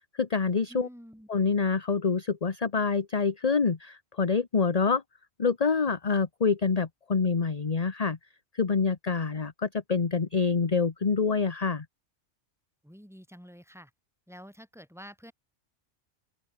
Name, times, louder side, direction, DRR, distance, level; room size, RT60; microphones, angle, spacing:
voice 1, 0.2-0.9 1.3-5.0 5.4-8.2 8.5-11.8, left 5 dB, 35° left, 1.1 m, -26 dB
voice 2, 0.7-1.3 12.8-13.9 14.3-15.3, equal, ahead, 4.1 m, -48 dB
open air
omnidirectional pair, 1.2 m